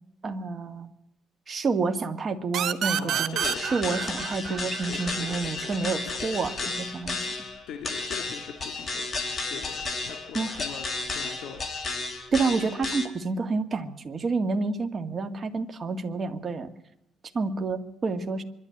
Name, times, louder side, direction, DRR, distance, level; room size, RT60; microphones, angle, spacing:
voice 1, 0.2-0.9 1.5-6.5 6.9-7.3 10.3-10.6 12.3-16.7 17.3-18.4, right 4 dB, 30° right, 7 dB, 1.9 m, -29 dB
sound 1, 2.5-5.9, right 9 dB, 55° right, 1.2 m, -30 dB
voice 2, 2.9-4.1 4.5-5.7 6.1-6.3 6.6-6.7 7.7-9.1 9.5-10.9 11.1-11.6, left 7 dB, 80° left, 5 dB, 1.9 m, -41 dB
sound 2, 3.4-13.1, left 3 dB, 25° left, 3.0 m, -33 dB
25.0 x 12.5 x 9.1 m, 0.80 s
cardioid pair, 150°, 0 cm